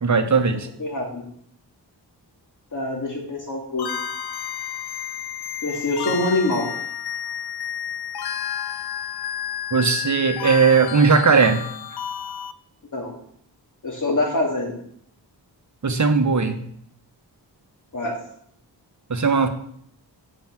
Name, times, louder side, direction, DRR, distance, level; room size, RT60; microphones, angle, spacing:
voice 1, 0.0-0.7 9.7-11.7 15.8-16.6 19.1-19.5, right 5 dB, 40° right, 6 dB, 1.0 m, -18 dB
voice 2, 0.8-1.2 2.7-3.9 5.6-6.7 12.9-13.1 13.8-14.8 17.9-18.2, left 2 dB, 45° left, -1 dB, 2.5 m, -25 dB
sound 1, 3.8-12.5, left 9 dB, 65° left, 0.5 m, -31 dB
7.8 x 5.3 x 7.4 m, 0.68 s
wide cardioid pair, 125°, 42 cm